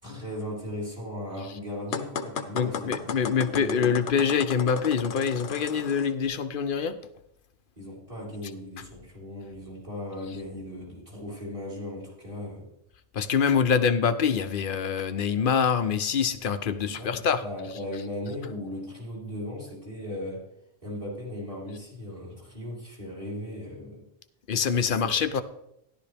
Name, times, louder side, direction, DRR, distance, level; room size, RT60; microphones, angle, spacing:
voice 1, 0.0-3.0 3.3-4.0 7.8-12.7 16.8-20.5 20.8-24.1 24.7-25.1, left 1 dB, 30° right, -4 dB, 4.2 m, -37 dB
sound 1, 1.9-6.1, left 6 dB, 90° left, 1.1 m, -35 dB
voice 2, 2.5-7.0 13.1-17.4 24.5-25.4, left 6 dB, 55° left, 11 dB, 0.8 m, -25 dB
13.5 x 11.5 x 3.4 m, 0.79 s
omnidirectional pair, 1.1 m